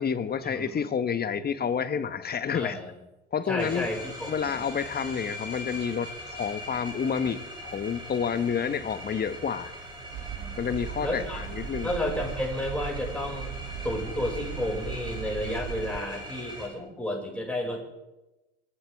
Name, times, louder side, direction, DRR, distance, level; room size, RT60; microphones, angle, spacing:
voice 1, 0.0-2.8 3.3-3.9 4.3-9.7 10.6-11.9, left 7 dB, 30° left, 1.3 m, -29 dB
voice 2, 2.5-2.9 3.5-4.6 10.3-10.5 11.0-11.5 11.8-13.5 13.8-17.8, left 1 dB, 5° left, 6.0 m, -32 dB
sound 1, 3.6-16.7, equal, 15° right, 6.1 m, -41 dB
sound 2, 10.1-16.0, right 9 dB, 50° right, 1.6 m, -38 dB
28.0 x 11.5 x 3.6 m
hypercardioid pair, 75°, 31 cm